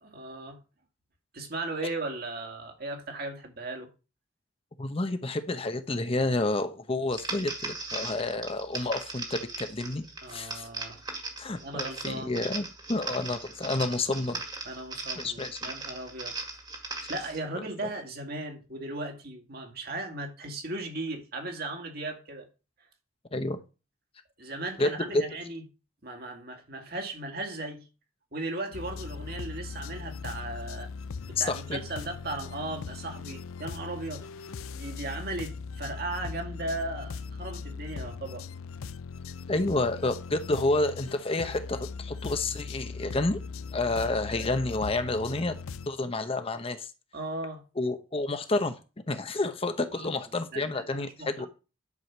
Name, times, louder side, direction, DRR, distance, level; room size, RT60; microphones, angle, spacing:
voice 1, 0.0-0.6 1.3-3.9 10.2-11.0 11.6-12.3 14.6-16.4 17.1-22.5 24.4-25.6 26.0-27.8 28.3-30.9 31.3-34.3 34.7-38.5 47.1-47.6 49.9-50.1 50.5-51.5, right 2 dB, 50° right, 2.3 m, -37 dB
voice 2, 4.8-10.0 10.3-10.7 11.4-14.4 15.2-15.7 23.3-23.6 24.8-25.2 31.4-31.8 39.5-43.4 43.7-45.5 45.9-46.9 47.8-48.8 49.1-51.5, left 2 dB, 30° left, 0.8 m, -29 dB
sound 1, 7.1-17.4, right 3 dB, 20° right, 2.0 m, -38 dB
sound 2, 28.7-45.9, left 5 dB, 80° left, 0.5 m, -39 dB
11.0 x 5.0 x 6.1 m
head